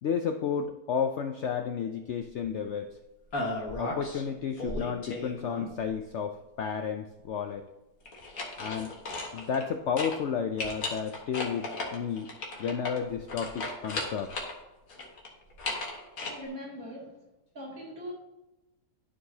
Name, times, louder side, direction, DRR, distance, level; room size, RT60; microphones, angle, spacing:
voice 1, 0.0-2.9 3.8-7.6 8.6-8.9 9.3-12.3 12.6-14.3, left 7 dB, 85° left, 6 dB, 0.6 m, -32 dB
sound 1, 3.3-4.2 4.6-5.9 8.0-9.7 10.0-10.2 10.6-14.5 14.9-16.3, left 2 dB, 55° left, 1.7 m, -35 dB
voice 2, 16.2-17.2 17.5-18.1, equal, 55° right, -6 dB, 3.1 m, -41 dB
12.5 x 4.7 x 2.8 m, 1.0 s
omnidirectional pair, 1.8 m